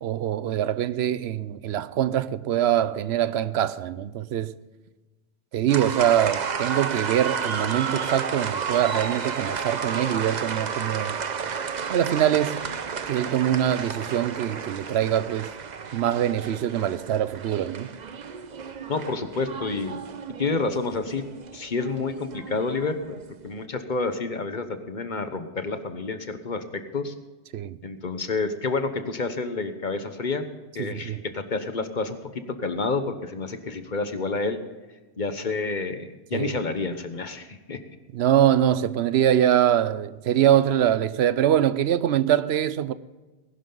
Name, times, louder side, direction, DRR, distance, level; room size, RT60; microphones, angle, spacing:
voice 1, 0.0-4.6 5.5-11.2 11.9-12.7 13.1-15.5 15.9-17.9 27.5-27.8 30.8-31.2 36.3-36.5 38.1-42.9, right 11 dB, 80° right, 0.9 m, -23 dB
sound 1, 5.7-23.3, right 6 dB, 45° right, 0.8 m, -32 dB
voice 2, 18.9-20.0 20.4-21.2 21.5-27.1 27.8-30.4 30.7-34.6 35.2-37.8, left 3 dB, 50° left, 1.1 m, -29 dB
20.0 x 11.0 x 3.9 m
omnidirectional pair, 1.1 m